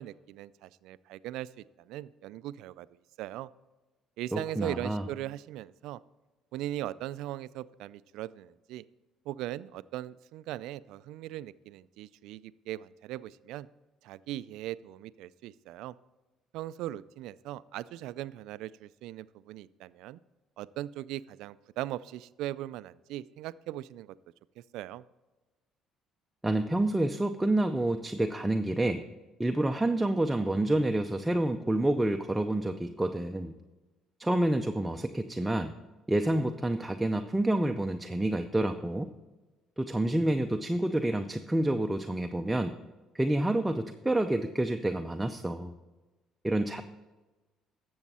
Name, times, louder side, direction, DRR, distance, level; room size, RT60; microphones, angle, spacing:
voice 1, 0.0-2.9 3.2-3.5 4.2-6.0 6.5-8.8 9.3-13.7 14.0-15.9 16.5-20.2 20.6-24.1 24.6-25.0, right 14 dB, 80° right, 17 dB, 0.3 m, -39 dB
voice 2, 4.3-5.0 26.4-29.0 29.4-33.5 34.2-35.8 36.1-39.1 39.8-42.8 43.1-45.7 46.4-46.8, right 1 dB, 10° right, 6 dB, 0.6 m, -28 dB
12.0 x 7.1 x 4.2 m, 1.2 s
supercardioid pair, 85°, 0 cm